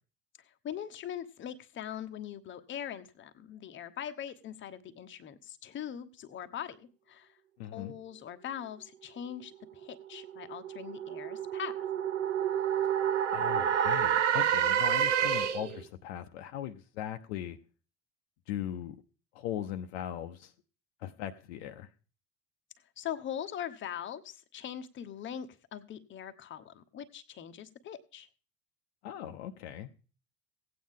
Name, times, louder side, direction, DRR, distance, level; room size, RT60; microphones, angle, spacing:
voice 1, 0.6-7.3 7.7-11.7 23.0-28.3, left 9 dB, 30° left, 9 dB, 0.9 m, -41 dB
voice 2, 7.6-7.9 13.3-17.6 18.5-19.0 19.3-20.5 21.0-21.9 29.0-29.9, left 11 dB, 60° left, 7 dB, 0.8 m, -39 dB
sound 1, 9.7-15.8, right 9 dB, 70° right, 0.8 m, -29 dB
16.5 x 8.7 x 3.7 m, 0.38 s
figure-of-eight pair, 60°, 38 cm